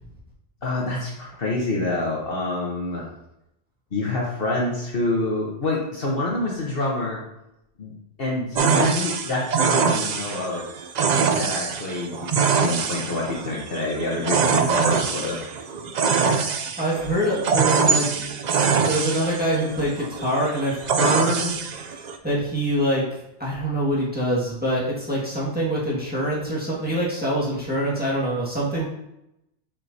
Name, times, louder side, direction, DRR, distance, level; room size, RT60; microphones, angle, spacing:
voice 1, 0.6-3.1 3.9-7.2 7.8-7.9 8.2-10.7 11.3-15.4, left 2 dB, 50° left, -3 dB, 1.2 m, -27 dB
sound 1, 8.6-22.2, right 5 dB, 60° right, 0.4 m, -24 dB
voice 2, 16.8-18.2 18.6-21.5 22.2-23.0 23.4-28.8, equal, 5° right, -7 dB, 1.6 m, -25 dB
7.4 x 4.7 x 2.7 m, 0.86 s
omnidirectional pair, 1.3 m